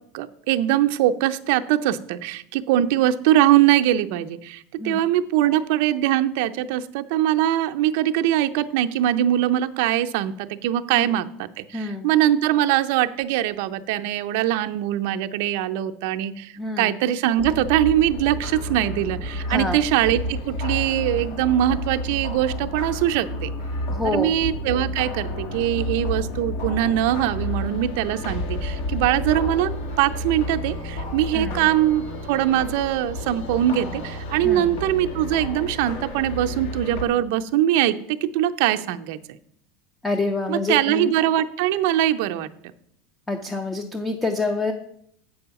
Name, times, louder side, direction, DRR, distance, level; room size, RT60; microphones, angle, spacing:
voice 1, 0.0-23.5 24.0-39.4 40.5-42.5, right 12 dB, 60° right, 8 dB, 0.5 m, -22 dB
voice 2, 11.7-12.1 16.6-17.0 19.5-19.8 23.9-24.4 31.3-31.7 34.4-34.8 40.0-41.1 43.3-44.7, left 3 dB, 5° left, 6 dB, 0.5 m, -27 dB
sound 1, 17.4-37.0, left 1 dB, 70° left, 2.0 m, -31 dB
7.7 x 5.4 x 6.9 m, 0.69 s
supercardioid pair, 165°, 0 cm